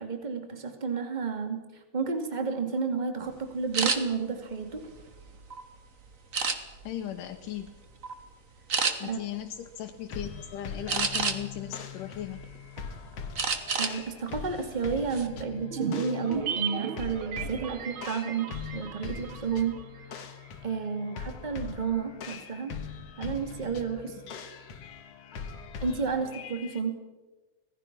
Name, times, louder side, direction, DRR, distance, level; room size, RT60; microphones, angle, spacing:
voice 1, 0.0-4.8 9.0-9.2 13.8-19.8 20.1-20.2 20.6-22.7 23.2-24.4 25.8-27.0, right 5 dB, 15° right, 6 dB, 2.1 m, -31 dB
sound 1, 3.7-4.0 4.6-5.6 6.3-6.9 7.4-7.7 8.0-8.2 8.7-8.9 10.9-11.6 12.1-12.8 13.4-14.0 14.3-14.5 14.9-15.3, right 5 dB, 40° right, 1.1 m, -29 dB
voice 2, 6.8-7.7 9.0-12.5 21.0-21.2, left 11 dB, 90° left, 4 dB, 2.6 m, -37 dB
sound 2, 10.1-26.8, left 6 dB, 55° left, 2.4 m, -42 dB
sound 3, 15.7-20.2 20.5-20.6, right 8 dB, 70° right, 1.2 m, -36 dB
25.5 x 18.5 x 6.1 m, 1.2 s
omnidirectional pair, 3.6 m